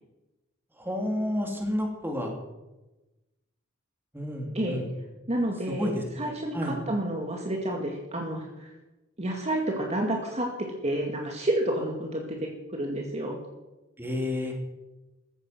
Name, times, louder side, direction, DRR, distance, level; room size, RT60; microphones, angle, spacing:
voice 1, 0.8-2.3 4.1-4.8 5.8-6.0 6.5-6.8 14.0-14.5, left 1 dB, 10° right, 1 dB, 3.4 m, -30 dB
voice 2, 5.3-8.7 9.2-10.5 10.8-12.4 12.8-13.4, right 1 dB, 35° right, 1 dB, 2.2 m, -30 dB
15.5 x 14.0 x 6.2 m, 1.1 s
head